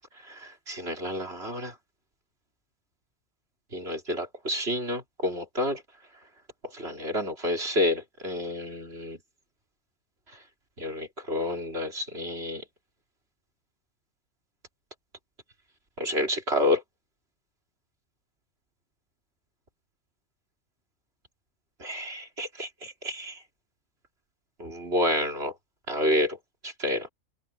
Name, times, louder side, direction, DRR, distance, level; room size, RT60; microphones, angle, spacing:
voice 1, 0.3-1.7 3.7-5.8 6.7-9.2 10.8-12.6 16.0-16.8 21.8-23.4 24.6-25.5 25.9-26.4 26.6-27.1, left 1 dB, 50° right, 3.8 m, -29 dB
open air
omnidirectional pair, 1.4 m